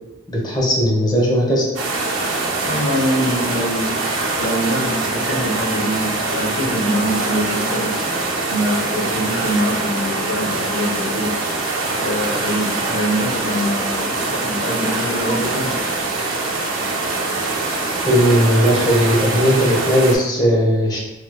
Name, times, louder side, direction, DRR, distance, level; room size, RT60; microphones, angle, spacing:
voice 1, 0.3-1.7 18.1-21.0, equal, 20° left, -4 dB, 0.8 m, -17 dB
sound 1, 1.8-20.2, right 3 dB, 85° right, 0.6 m, -23 dB
voice 2, 2.6-4.0 4.4-8.0 8.5-11.4 11.9-15.8, equal, 65° left, -3 dB, 0.9 m, -24 dB
3.2 x 3.0 x 2.2 m, 1.1 s
head